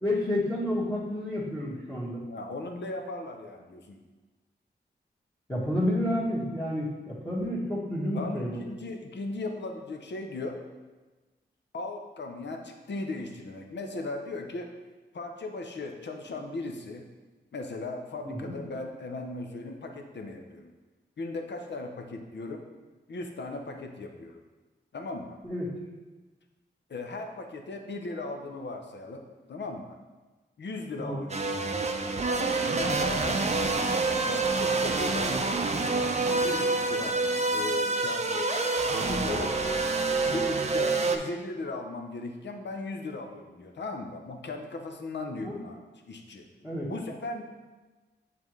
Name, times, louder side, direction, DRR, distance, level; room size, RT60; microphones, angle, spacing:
voice 1, 0.0-2.2 5.5-8.6 18.2-18.6 25.4-25.7 31.0-31.2 45.4-45.6 46.6-46.9, left 1 dB, 15° left, -10 dB, 1.6 m, -30 dB
voice 2, 2.2-4.0 8.1-10.6 11.7-14.7 15.1-17.0 17.5-20.7 21.2-22.7 23.1-24.4 24.9-25.4 26.9-29.2 29.5-30.0 30.6-31.9 32.3-35.4 36.0-37.2 37.5-39.6 40.2-45.8 46.1-46.5 46.9-47.4, left 2 dB, 65° left, 4 dB, 0.8 m, -37 dB
sound 1, 31.3-41.2, right 3 dB, 35° right, 0.5 m, -27 dB
7.7 x 3.8 x 3.2 m, 1.3 s
cardioid pair, 50°, 19 cm